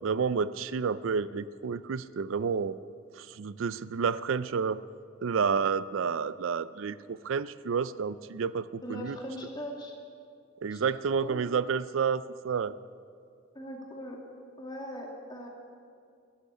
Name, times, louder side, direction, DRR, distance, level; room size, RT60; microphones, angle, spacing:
voice 1, 0.0-2.8 3.2-4.8 5.2-9.2 10.6-12.8, right 6 dB, 80° right, 16 dB, 0.4 m, -30 dB
voice 2, 8.8-9.9 10.7-10.8 11.2-11.4 13.5-14.2 14.6-15.5, equal, 20° left, 0 dB, 2.3 m, -40 dB
12.0 x 12.0 x 9.7 m, 2.3 s
head